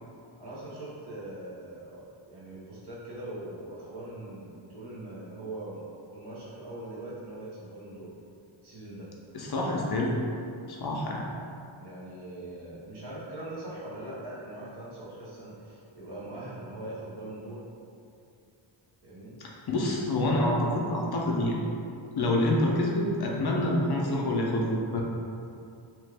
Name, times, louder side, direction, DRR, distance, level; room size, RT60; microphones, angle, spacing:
voice 1, 0.4-5.8 6.1-8.1 8.6-9.1 11.8-17.7 19.0-19.4, right 1 dB, 50° right, -8 dB, 0.9 m, -41 dB
voice 2, 9.3-10.2 10.7-11.2 19.4-21.6 22.1-25.0, left 1 dB, 50° left, -2 dB, 0.5 m, -27 dB
2.9 x 2.3 x 3.3 m, 2.5 s
wide cardioid pair, 120°, 50 cm